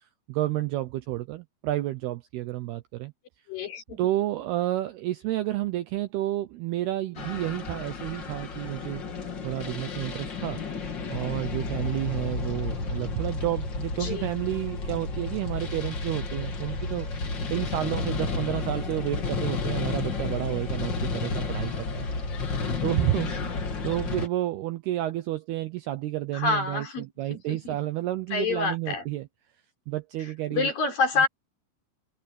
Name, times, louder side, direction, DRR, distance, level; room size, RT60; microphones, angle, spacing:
voice 1, 0.0-3.1 4.0-9.0 9.4-10.6 11.1-17.1 17.5-22.1 22.8-23.3 23.8-29.3 29.9-30.7, right 15 dB, 85° right, 2.2 m, -30 dB
voice 2, 3.5-4.0 14.0-14.3 26.3-27.8 28.3-29.1 30.2-31.3, left 4 dB, 45° left, 5.8 m, -28 dB
sound 1, 7.2-24.3, left 4 dB, 65° left, 1.1 m, -32 dB
open air
omnidirectional pair, 5.8 m